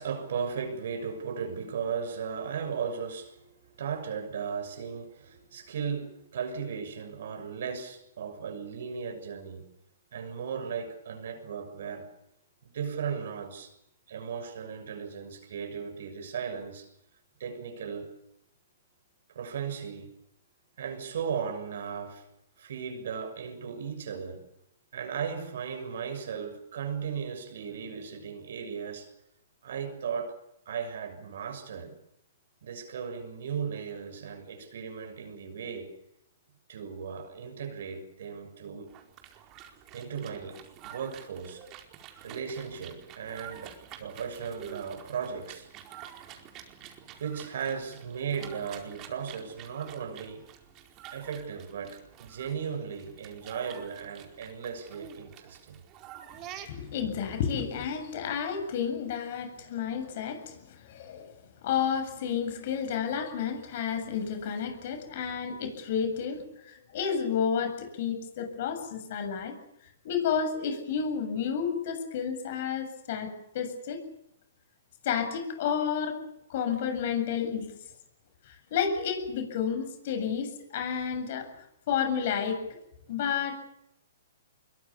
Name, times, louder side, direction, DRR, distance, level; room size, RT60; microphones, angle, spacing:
voice 1, 0.0-9.6 10.1-12.1 12.6-13.7 14.1-16.9 17.4-18.1 19.3-20.1 20.8-22.3 22.6-24.4 24.9-29.1 29.6-30.4 30.6-31.9 32.6-35.9 36.7-38.9 39.9-41.6 42.2-45.7 47.2-50.5 51.1-55.8, right 6 dB, 65° right, 8 dB, 6.6 m, -36 dB
sound 1, 38.9-57.0, right 10 dB, 35° right, 4.6 m, -49 dB
voice 2, 56.6-61.4 61.6-69.5 70.0-74.0 75.0-76.2 76.5-77.7 78.5-81.5 81.9-82.8 83.1-83.6, left 7 dB, 55° left, 8 dB, 7.5 m, -31 dB
25.5 x 23.0 x 7.1 m, 0.81 s
hypercardioid pair, 120°, 0 cm